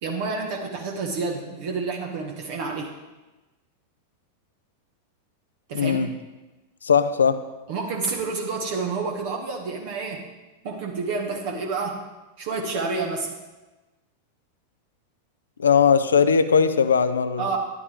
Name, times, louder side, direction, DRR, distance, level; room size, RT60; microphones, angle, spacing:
voice 1, 0.0-2.9 5.7-6.0 7.7-10.3 10.6-12.0 12.4-13.3 17.4-17.6, right 4 dB, 50° right, 1 dB, 1.6 m, -29 dB
voice 2, 5.7-6.1 6.8-7.4 15.6-17.4, left 6 dB, 70° left, 11 dB, 0.7 m, -19 dB
13.5 x 11.0 x 3.7 m, 1.1 s
figure-of-eight pair, 90°, 0 cm